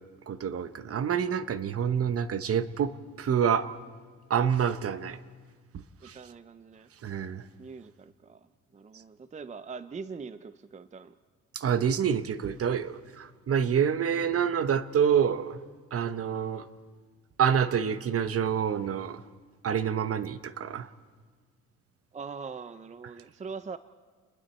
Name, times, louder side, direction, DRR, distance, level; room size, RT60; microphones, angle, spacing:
voice 1, 0.0-3.7 4.3-5.2 5.7-6.2 7.0-7.4 11.5-15.6 15.9-16.7 17.4-19.2 19.6-20.9, right 8 dB, 50° right, 13 dB, 1.0 m, -27 dB
voice 2, 6.0-6.9 7.6-8.5 8.7-11.2 22.1-23.8, right 5 dB, 25° right, 13 dB, 0.5 m, -42 dB
30.0 x 20.5 x 4.3 m, 1.5 s
cardioid pair, 90°, 30 cm